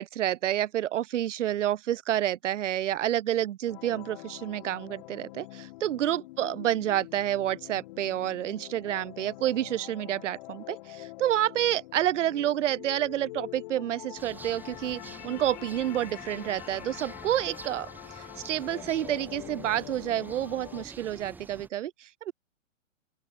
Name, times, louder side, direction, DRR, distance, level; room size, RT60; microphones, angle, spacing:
voice 1, 0.0-22.3, right 12 dB, 65° right, 0.9 m, -29 dB
sound 1, 3.7-20.8, left 19 dB, 35° left, 1.4 m, -45 dB
sound 2, 14.1-21.7, right 3 dB, 5° right, 1.6 m, -47 dB
open air
hypercardioid pair, 150°, 40 cm